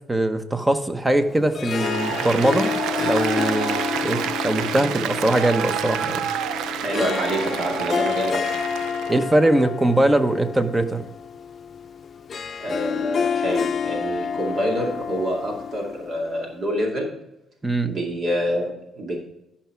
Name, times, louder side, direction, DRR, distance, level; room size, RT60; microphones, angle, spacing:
voice 1, 0.1-6.3 9.1-11.0 17.6-17.9, right 1 dB, 15° right, 8 dB, 1.0 m, -21 dB
Harp, 1.3-16.5, left 7 dB, 50° left, 0.6 m, -29 dB
Applause, 1.7-9.2, right 9 dB, 90° right, 0.4 m, -28 dB
voice 2, 6.8-8.6 12.6-17.1 17.8-19.2, equal, 55° right, 0 dB, 2.4 m, -26 dB
12.0 x 5.7 x 4.6 m, 0.87 s
cardioid pair, 90°, 0 cm